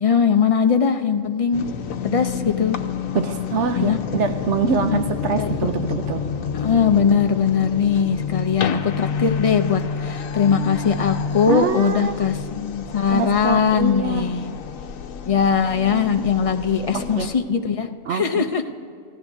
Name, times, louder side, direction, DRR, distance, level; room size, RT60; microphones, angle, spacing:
voice 1, 0.0-1.7 2.0-2.8 3.8-4.0 5.4-5.5 6.5-14.5 15.3-18.6, left 6 dB, 55° left, 6 dB, 0.3 m, -20 dB
sound 1, 1.5-17.4, left 6 dB, 80° left, 1.2 m, -29 dB
voice 2, 3.1-6.2 11.5-12.2 13.1-14.3 16.9-17.3 18.1-18.4, right 5 dB, 65° right, 8 dB, 1.0 m, -24 dB
30.0 x 16.0 x 2.7 m, 2.3 s
omnidirectional pair, 1.4 m